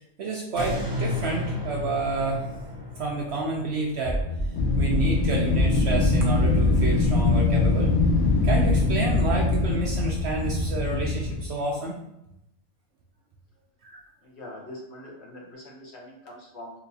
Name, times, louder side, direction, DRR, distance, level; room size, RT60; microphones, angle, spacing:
voice 1, 0.0-2.5 3.0-4.2 4.8-7.9 8.3-12.0 13.8-14.0, right 3 dB, 65° right, -1 dB, 0.7 m, -29 dB
sound 1, 0.5-5.7 6.1-6.2, left 1 dB, 5° right, 0.6 m, -34 dB
sound 2, 4.0-9.1, left 1 dB, 30° left, 0.8 m, -33 dB
Wind, 4.6-11.5, left 3 dB, 85° left, 0.4 m, -22 dB
voice 2, 14.2-16.8, left 1 dB, 55° left, -2 dB, 1.0 m, -43 dB
3.9 x 2.5 x 2.7 m, 0.83 s
omnidirectional pair, 1.4 m